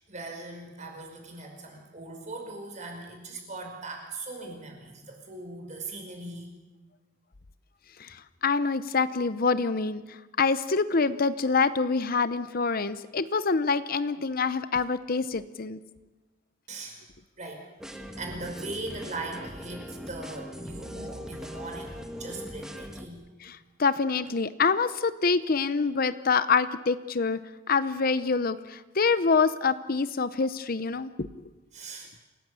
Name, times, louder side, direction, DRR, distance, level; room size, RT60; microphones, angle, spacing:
voice 1, 0.1-6.5 16.7-17.0 17.4-17.7 17.9-23.2 31.7-32.1, right 2 dB, 35° right, 3 dB, 5.3 m, -40 dB
voice 2, 8.4-10.0 10.4-15.8 23.4-27.4 27.7-31.3, left 4 dB, 45° left, 13 dB, 0.7 m, -26 dB
sound 1, 17.8-23.1, equal, 5° right, 1.7 m, -40 dB
28.0 x 18.0 x 8.3 m, 1.1 s
head